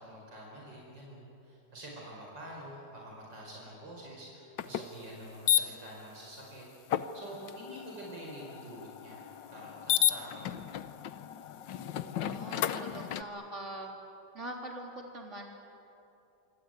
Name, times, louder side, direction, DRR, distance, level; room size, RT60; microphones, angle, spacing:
voice 1, 0.0-9.2 9.5-11.0, right 1 dB, 75° right, -2 dB, 5.7 m, -47 dB
sound 1, 4.6-4.8 5.5-5.6 6.9-13.2, left 11 dB, 80° left, 1.6 m, -33 dB
voice 2, 12.2-13.9 14.3-15.5, right 1 dB, 40° right, 1 dB, 3.8 m, -42 dB
25.5 x 25.0 x 9.2 m, 2.8 s
omnidirectional pair, 2.0 m